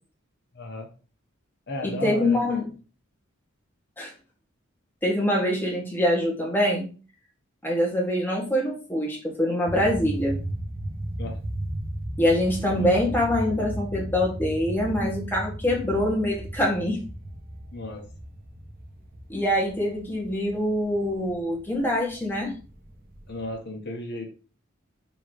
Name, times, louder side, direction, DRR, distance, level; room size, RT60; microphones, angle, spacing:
voice 1, 0.5-0.9 1.7-2.5 11.2-11.4 12.8-12.9 17.7-18.0 23.3-24.3, left 2 dB, 55° left, 2 dB, 1.4 m, -34 dB
voice 2, 1.8-2.7 4.0-4.1 5.0-6.9 7.6-10.4 12.2-17.0 19.3-22.5, left 1 dB, 10° left, -2 dB, 1.7 m, -24 dB
sound 1, 9.7-23.6, right 1 dB, 45° right, 1.0 m, -36 dB
6.9 x 3.2 x 4.9 m, 0.36 s
head